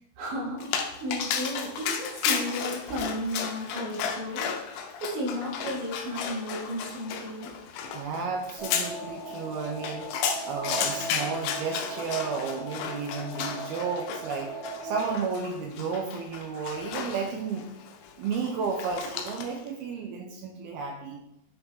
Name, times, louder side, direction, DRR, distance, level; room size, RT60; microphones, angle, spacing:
voice 1, 0.2-4.7 5.0-7.5, equal, 70° right, -4 dB, 4.6 m, -34 dB
Dog, 0.6-19.7, left 7 dB, 85° left, 3.1 m, -34 dB
voice 2, 7.9-17.7 18.2-21.2, right 5 dB, 85° right, 1 dB, 2.2 m, -33 dB
sound 1, 8.6-15.1, right 2 dB, 45° right, 2.4 m, -39 dB
10.5 x 5.3 x 4.0 m, 0.84 s
omnidirectional pair, 5.4 m